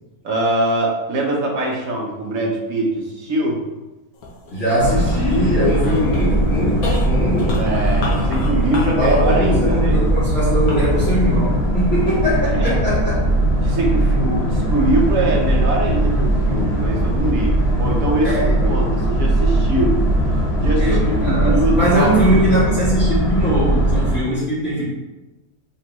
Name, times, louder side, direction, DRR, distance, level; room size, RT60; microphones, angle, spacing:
voice 1, 0.2-3.6 7.6-10.0 12.5-12.8 13.6-20.0 20.6-22.4, right 2 dB, 65° right, -2 dB, 1.4 m, -22 dB
sound 1, 4.1-12.6 13.2-13.9, left 2 dB, 70° left, 1.2 m, -34 dB
voice 2, 4.5-7.7 9.0-13.1 18.2-18.5 20.8-24.8, equal, 50° left, -12 dB, 1.8 m, -20 dB
Boat Water vehicle, 4.8-24.2, right 1 dB, 35° left, 1.3 m, -19 dB
5.7 x 3.1 x 3.0 m, 1.1 s
omnidirectional pair, 1.6 m